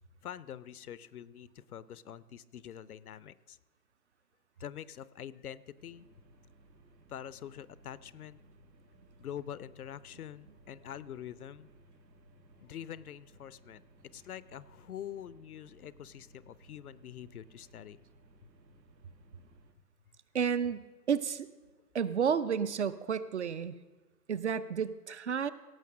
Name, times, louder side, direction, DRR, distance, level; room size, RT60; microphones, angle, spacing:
voice 1, 0.2-3.6 4.6-6.1 7.1-8.4 9.2-11.7 12.6-13.8 14.1-18.0, left 10 dB, 65° left, 18 dB, 0.6 m, -45 dB
sound 1, 5.8-19.7, right 1 dB, 80° right, 1.6 m, -61 dB
voice 2, 20.3-21.5 21.9-23.8 24.3-25.5, right 7 dB, 45° right, 15 dB, 0.5 m, -31 dB
17.5 x 6.7 x 6.2 m, 1.2 s
figure-of-eight pair, 135°, 49 cm